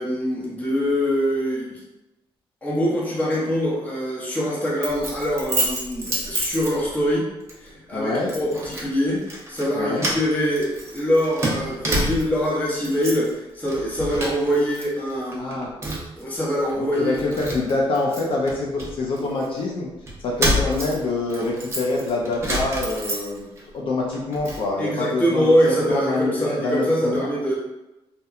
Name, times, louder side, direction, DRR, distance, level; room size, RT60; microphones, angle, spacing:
voice 1, 0.0-1.8 2.6-7.3 7.6-15.6 16.2-17.2 24.8-27.6, equal, 15° left, -6 dB, 0.7 m, -23 dB
Keys jangling, 4.8-7.1 7.5-7.7 8.3-8.9 9.2-9.7 10.0-12.5 12.8-13.3 13.6-14.8 15.1-16.2 16.7-16.8 17.1-19.5 20.1-23.6 24.0-24.6, right 1 dB, 25° right, 0.5 m, -28 dB
voice 2, 7.9-8.3 9.7-10.0 15.4-15.7 16.8-19.9 20.2-23.5 23.7-27.3, left 2 dB, 60° left, -2 dB, 0.4 m, -25 dB
2.8 x 2.1 x 2.3 m, 0.98 s
cardioid pair, 155°, 10 cm